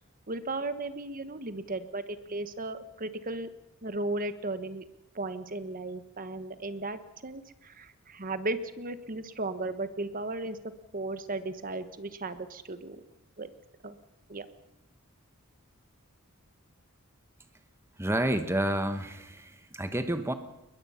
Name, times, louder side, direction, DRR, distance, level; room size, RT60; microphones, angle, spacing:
voice 1, 0.3-3.5 3.8-4.8 5.1-10.6 10.9-13.0 13.4-13.5 13.8-13.9 14.3-14.5, right 2 dB, 40° right, 11 dB, 1.3 m, -35 dB
voice 2, 18.0-20.3, right 1 dB, 10° right, 8 dB, 1.3 m, -29 dB
22.0 x 20.5 x 5.7 m, 0.94 s
head